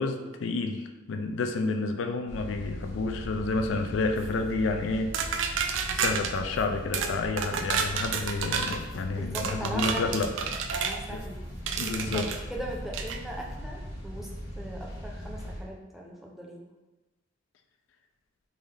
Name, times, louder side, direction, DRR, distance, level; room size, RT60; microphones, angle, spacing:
voice 1, 0.0-5.6 5.9-10.3 11.1-11.2 11.8-12.3, left 3 dB, 90° left, 6 dB, 0.4 m, -30 dB
sound 1, 2.3-15.6, equal, 70° left, 0.9 m, -40 dB
sound 2, 5.1-6.3 6.9-7.1 7.4-8.8 9.3-11.0 11.7-12.4 12.9-13.2, right 6 dB, 85° right, 0.3 m, -30 dB
voice 2, 9.2-10.2 10.7-11.4 12.1-14.3 14.6-16.6, equal, ahead, -2 dB, 0.5 m, -39 dB
3.7 x 2.6 x 3.3 m, 1.1 s
head